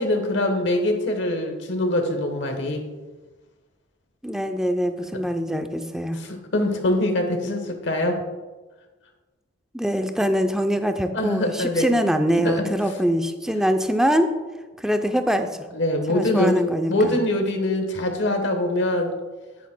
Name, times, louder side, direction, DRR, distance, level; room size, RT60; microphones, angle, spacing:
voice 1, 0.0-2.9 6.2-8.2 11.1-12.0 12.4-12.6 15.7-16.6 16.9-19.1, left 1 dB, 65° left, 4 dB, 1.1 m, -23 dB
voice 2, 4.2-6.2 9.7-14.3 14.8-15.5 16.1-17.2, equal, 5° right, 6 dB, 0.4 m, -23 dB
10.0 x 9.4 x 2.2 m, 1.2 s
head